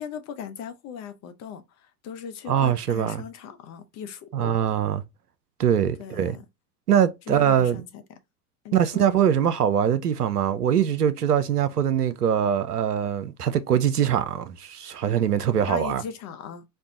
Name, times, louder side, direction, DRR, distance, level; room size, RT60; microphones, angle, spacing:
voice 1, 0.0-4.6 6.0-6.4 7.3-8.0 8.6-9.1 15.7-16.6, left 7 dB, 35° left, 0.8 m, -38 dB
voice 2, 2.5-3.2 4.3-5.0 5.6-6.4 6.9-7.8 8.7-16.0, right 9 dB, 90° right, 0.7 m, -23 dB
4.5 x 2.3 x 3.7 m
hypercardioid pair, 85°, 45 cm